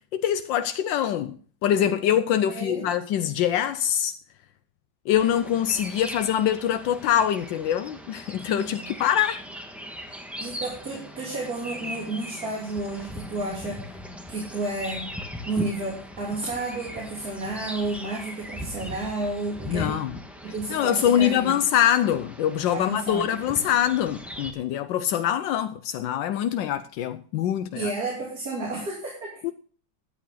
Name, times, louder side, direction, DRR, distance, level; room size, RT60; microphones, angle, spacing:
voice 1, 0.1-1.4 1.6-4.1 5.1-9.4 19.7-20.2 20.7-27.9 29.4-29.5, left 10 dB, 80° left, 1.4 m, -24 dB
voice 2, 2.5-2.9 8.6-9.0 10.4-14.0 14.3-15.1 15.5-20.0 20.4-21.6 22.7-23.7 27.7-29.3, right 2 dB, 50° right, 3.6 m, -31 dB
sound 1, 5.1-24.5, equal, ahead, 1.2 m, -39 dB
13.0 x 9.6 x 3.8 m
omnidirectional pair, 2.0 m